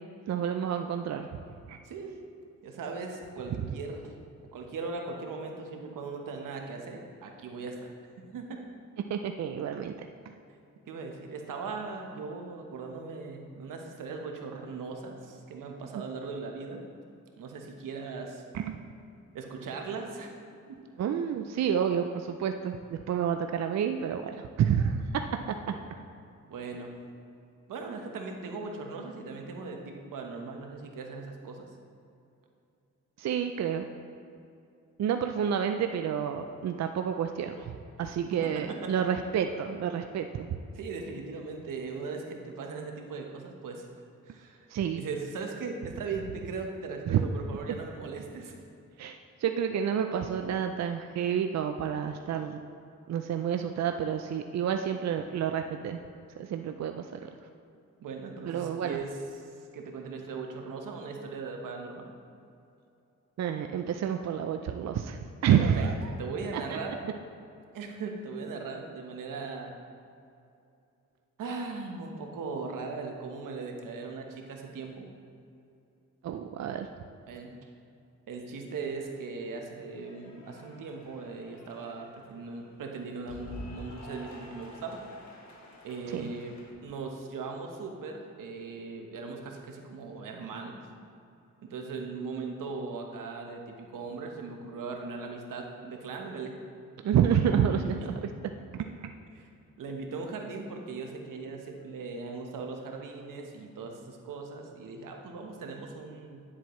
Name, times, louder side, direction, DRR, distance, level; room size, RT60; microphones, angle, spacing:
voice 1, 0.3-1.3 1.7-1.8 3.7-3.8 9.1-9.9 18.5-18.8 21.0-25.2 25.7-25.8 33.2-33.8 35.0-40.6 44.7-45.0 47.1-47.2 49.0-52.6 53.1-56.0 56.4-57.3 58.5-59.0 63.4-66.1 66.5-66.6 76.2-76.9 86.1-86.3 97.0-98.3 98.7-99.1, right 8 dB, 60° right, 6 dB, 0.5 m, -29 dB
voice 2, 1.8-2.2 2.6-4.2 4.5-7.9 8.3-8.6 10.9-16.9 17.4-18.4 19.3-20.3 20.7-20.8 26.5-26.9 27.7-31.7 38.4-38.9 40.7-43.9 44.3-44.7 45.0-48.5 58.0-59.2 59.7-62.1 65.5-65.9 66.2-67.0 67.7-69.7 71.4-75.1 77.3-77.5 78.3-85.0 85.8-86.6 86.8-90.8 91.6-96.5 97.6-98.1 99.3-99.5 99.8-106.4, right 4 dB, 85° right, 2 dB, 1.1 m, -39 dB
Cheering / Applause, 79.0-86.7, equal, 60° left, 1.5 m, -49 dB
10.0 x 7.4 x 3.1 m, 2.6 s
cardioid pair, 80°, 31 cm